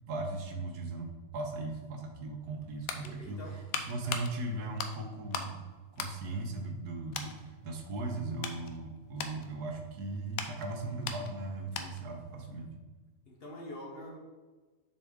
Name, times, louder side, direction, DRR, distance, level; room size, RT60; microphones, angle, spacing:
voice 1, 0.1-5.6 6.0-12.7, right 2 dB, 80° right, 3 dB, 1.4 m, -38 dB
sound 1, 2.4-5.6 5.9-6.8 7.1-7.4 7.9-12.2 12.5-12.6, left 6 dB, 70° left, 1.0 m, -40 dB
voice 2, 3.0-3.7 13.2-14.2, left 1 dB, 45° left, -1 dB, 1.0 m, -45 dB
6.8 x 4.6 x 3.6 m, 1.3 s
omnidirectional pair, 1.7 m